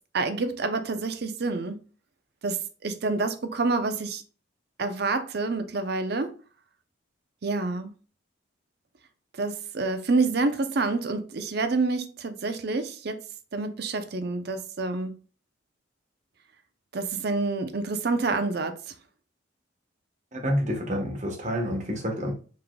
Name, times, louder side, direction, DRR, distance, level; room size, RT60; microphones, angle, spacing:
voice 1, 0.1-1.8 2.4-4.2 4.8-6.4 7.4-7.9 9.4-13.2 13.5-15.1 16.9-18.9, right 3 dB, 55° right, 0.6 m, -28 dB
voice 2, 20.3-22.4, equal, 35° right, 1.2 m, -28 dB
4.9 x 3.7 x 2.2 m
head